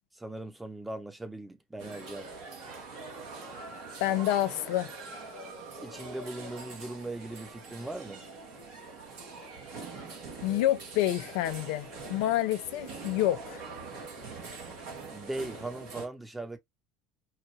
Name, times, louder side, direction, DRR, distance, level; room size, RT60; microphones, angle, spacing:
voice 1, 0.1-2.3 5.8-8.2 15.1-16.6, right 2 dB, 10° right, 1.1 m, -39 dB
sound 1, 1.8-16.1, right 3 dB, 60° right, 1.9 m, -44 dB
voice 2, 4.0-4.9 10.4-13.6, left 14 dB, 65° left, 0.6 m, -28 dB
4.9 x 2.6 x 3.3 m
figure-of-eight pair, 65°, 0 cm